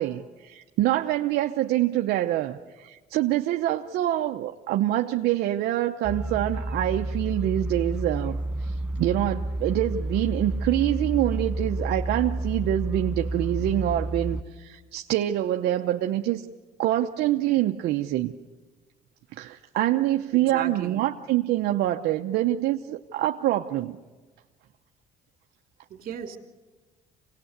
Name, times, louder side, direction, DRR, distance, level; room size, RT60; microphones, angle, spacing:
voice 1, 0.0-16.4 16.8-18.3 19.3-24.0, right 13 dB, 75° right, 4 dB, 0.9 m, -25 dB
sound 1, 6.0-14.4, right 1 dB, 5° right, 0.8 m, -30 dB
voice 2, 20.3-21.1 25.9-26.4, right 7 dB, 55° right, 5 dB, 2.9 m, -36 dB
26.5 x 19.0 x 8.1 m, 1.3 s
cardioid pair, 110°, 17 cm